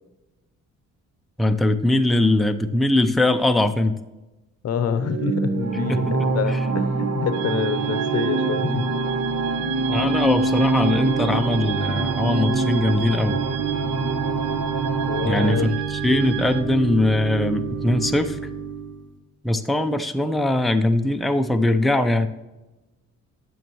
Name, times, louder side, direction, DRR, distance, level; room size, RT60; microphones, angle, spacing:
voice 1, 1.4-3.9 5.9-6.1 6.5-6.6 9.9-13.4 15.3-18.4 19.4-22.3, left 1 dB, ahead, 6 dB, 0.6 m, -21 dB
voice 2, 4.6-8.9 15.1-15.7, left 7 dB, 55° left, 12 dB, 0.8 m, -27 dB
Organ / Church bell, 4.9-19.1, right 4 dB, 40° right, 1.2 m, -27 dB
sound 1, 5.5-15.5, right 3 dB, 65° right, 1.3 m, -28 dB
sound 2, 7.3-16.6, right 14 dB, 90° right, 0.7 m, -35 dB
12.0 x 6.4 x 3.1 m, 1.0 s
cardioid pair, 90°, 30 cm